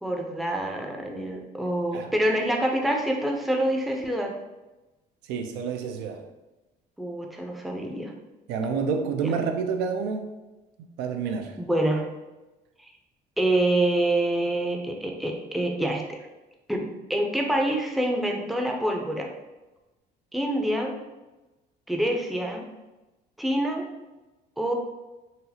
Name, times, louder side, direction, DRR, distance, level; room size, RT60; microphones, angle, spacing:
voice 1, 0.0-4.3 7.0-8.1 9.2-9.4 11.6-12.0 12.8-12.9 13.4-16.2 16.7-19.3 20.3-20.9 21.9-22.6 23.4-23.8 24.6-24.7, right 1 dB, ahead, 1 dB, 0.4 m, -26 dB
voice 2, 5.3-6.2 8.5-10.3 10.8-11.6, right 6 dB, 90° right, 5 dB, 0.4 m, -29 dB
3.9 x 2.0 x 2.7 m, 1.1 s
cardioid pair, 110°, 17 cm